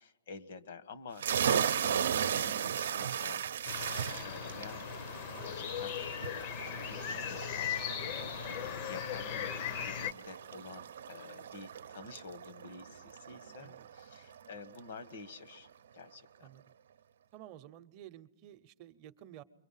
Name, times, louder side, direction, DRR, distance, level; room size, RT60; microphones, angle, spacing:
voice 1, 0.0-4.9 5.4-6.0 6.3-15.7 15.9-16.5, left 4 dB, 65° left, 12 dB, 1.2 m, -50 dB
sound 1, 1.2-14.5, right 8 dB, 75° right, 0.7 m, -37 dB
sound 2, 3.6-10.1, left 8 dB, 40° left, 0.7 m, -38 dB
voice 2, 16.4-16.7 17.3-19.4, right 12 dB, 35° right, 10 dB, 0.8 m, -52 dB
28.0 x 23.5 x 5.7 m, 0.95 s
hypercardioid pair, 155°, 0 cm